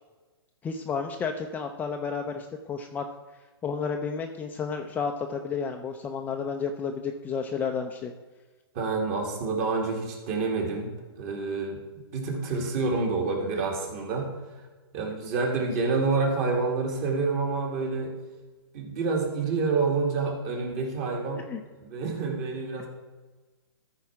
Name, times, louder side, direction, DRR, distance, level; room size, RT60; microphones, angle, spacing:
voice 1, 0.6-3.0 3.6-8.1 21.5-21.6, left 5 dB, 10° left, 3 dB, 0.5 m, -31 dB
voice 2, 8.7-11.8 12.1-14.6 14.9-18.1 18.7-21.5 21.8-22.9, right 4 dB, 35° right, 2 dB, 2.3 m, -28 dB
13.5 x 4.8 x 5.9 m, 1.3 s
hypercardioid pair, 145°, 14 cm